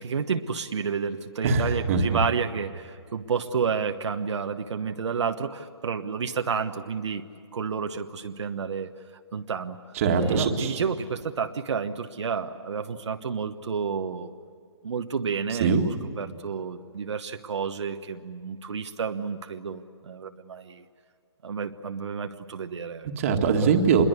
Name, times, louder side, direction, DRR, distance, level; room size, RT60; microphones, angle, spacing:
voice 1, 0.0-7.2 7.5-8.9 9.3-9.8 10.2-14.3 14.8-20.8 21.4-23.1, right 6 dB, 70° right, 6 dB, 1.2 m, -30 dB
voice 2, 1.4-2.2 10.0-10.7 15.6-15.8 23.2-24.1, right 5 dB, 30° right, 4 dB, 1.9 m, -22 dB
26.5 x 22.0 x 8.1 m, 2.3 s
hypercardioid pair, 170°, 15 cm